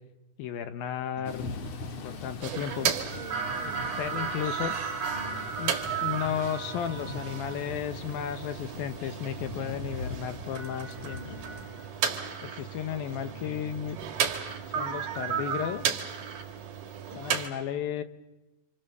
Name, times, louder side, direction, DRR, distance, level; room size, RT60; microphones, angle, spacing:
voice 1, 0.4-1.5 2.0-2.9 4.0-4.7 5.5-5.8 6.0-11.4 12.4-14.0 14.7-16.0 17.1-18.0, left 9 dB, 70° left, 10 dB, 2.7 m, -34 dB
Thunder / Rain, 1.2-12.0, left 3 dB, 55° left, 1.6 m, -42 dB
sound 1, 1.2-17.2, equal, 25° right, 5.0 m, -52 dB
sound 2, 2.4-17.5, right 7 dB, 55° right, 3.2 m, -34 dB
voice 2, 2.5-4.4 16.9-17.2, right 10 dB, 75° right, 9 dB, 3.5 m, -44 dB
30.0 x 27.0 x 6.9 m, 0.99 s
omnidirectional pair, 4.7 m